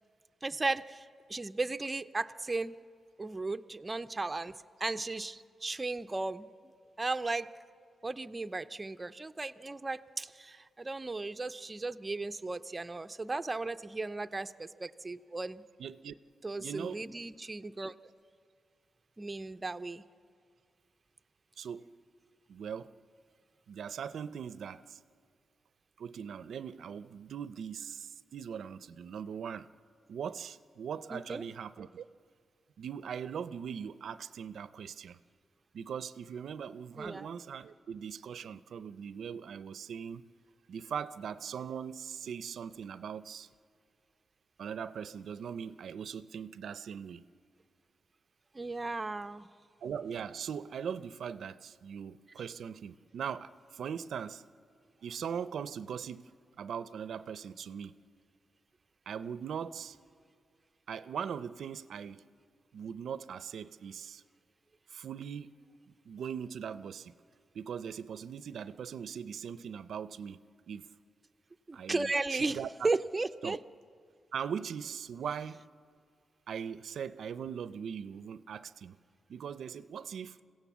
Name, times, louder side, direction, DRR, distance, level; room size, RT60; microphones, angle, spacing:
voice 1, 0.4-1.0 1.3-2.8 3.2-6.5 7.0-7.5 8.0-15.6 16.4-17.9 19.2-20.0 31.1-31.4 37.0-37.3 48.5-49.5 71.7-72.6 72.8-73.6, right 3 dB, 20° right, 0.5 m, -35 dB
voice 2, 15.8-16.1 16.6-17.0 21.6-21.9 22.5-22.9 23.7-25.0 26.0-29.7 30.1-32.1 32.8-35.2 35.7-40.3 40.7-43.5 44.6-47.3 49.8-54.4 55.0-56.3 56.6-58.0 59.1-60.0 60.9-62.2 62.7-64.2 64.9-65.5 66.1-67.1 67.5-70.4 70.7-70.9 71.7-72.9 73.4-73.6 74.3-75.6 76.5-79.0 79.3-80.4, right 7 dB, 70° right, 0.5 m, -40 dB
26.5 x 16.5 x 7.3 m
cardioid pair, 110°, 0 cm